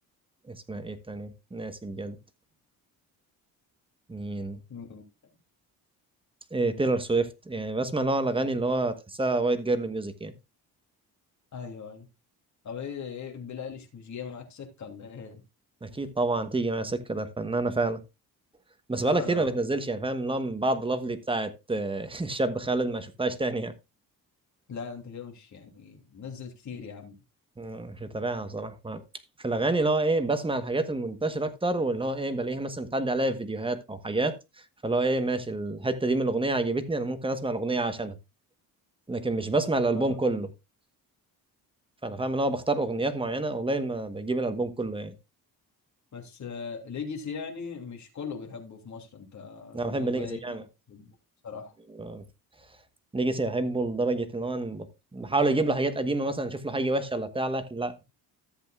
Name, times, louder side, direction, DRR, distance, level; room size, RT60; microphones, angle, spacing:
voice 1, 0.5-2.2 4.1-4.6 6.5-10.3 15.8-18.0 18.9-23.7 27.6-29.0 29.4-34.3 34.8-38.2 39.1-40.5 42.0-45.1 49.7-50.6 52.0-52.2 53.1-54.9 55.1-58.0, right 2 dB, 15° right, 1.2 m, -28 dB
voice 2, 4.7-5.0 11.5-12.1 12.6-15.4 19.0-19.5 24.7-27.1 40.0-40.2 46.1-50.6 50.9-51.1 51.4-51.7, left 6 dB, 50° left, 2.8 m, -39 dB
14.0 x 7.9 x 2.4 m
cardioid pair, 110°, 37 cm